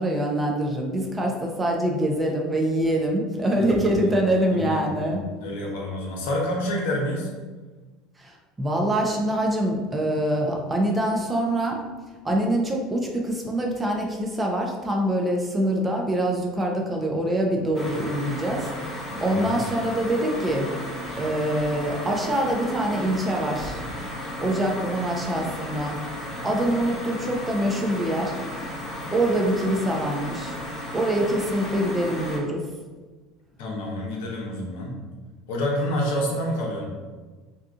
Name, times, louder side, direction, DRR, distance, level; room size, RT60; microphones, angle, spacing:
voice 1, 0.0-5.2 8.2-11.7 12.2-18.7 19.2-20.7 21.2-23.8 24.4-26.0 26.4-28.4 29.1-30.6 30.9-32.6, right 1 dB, 20° right, 0 dB, 0.7 m, -24 dB
voice 2, 3.5-4.1 4.5-7.3 19.1-19.6 33.6-35.0 35.5-36.8, left 1 dB, 75° left, -2 dB, 0.8 m, -28 dB
sound 1, 17.7-32.4, left 1 dB, 15° left, 0.9 m, -34 dB
2.8 x 2.4 x 3.6 m, 1.3 s
hypercardioid pair, 80°, 0 cm